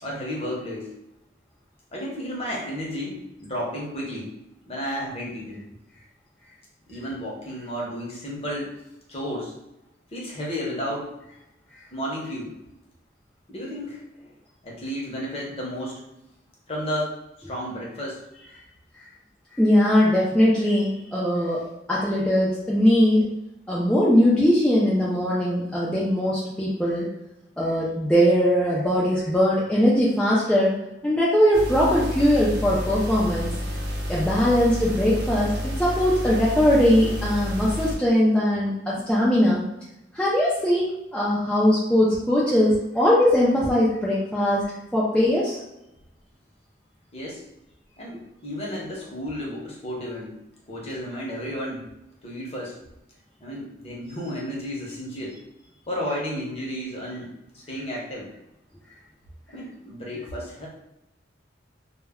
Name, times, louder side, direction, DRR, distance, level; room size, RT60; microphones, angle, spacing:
voice 1, 0.0-0.9 1.9-4.3 4.7-5.6 6.9-8.7 9.1-9.5 10.1-11.1 11.9-12.5 13.5-14.0 14.6-16.0 16.7-18.2 47.1-47.4 48.0-50.3 50.7-51.8 52.2-52.7 53.4-55.4 55.9-58.3 59.5-60.7, equal, 30° left, -3 dB, 0.7 m, -32 dB
voice 2, 19.5-23.3 23.7-27.1 27.6-30.7 31.0-33.5 34.1-39.6 40.1-44.7 44.9-45.6, equal, 5° left, -7 dB, 0.4 m, -20 dB
sound 1, 31.5-38.0, equal, 55° right, 0.6 m, -30 dB
2.1 x 2.1 x 3.5 m, 0.90 s
head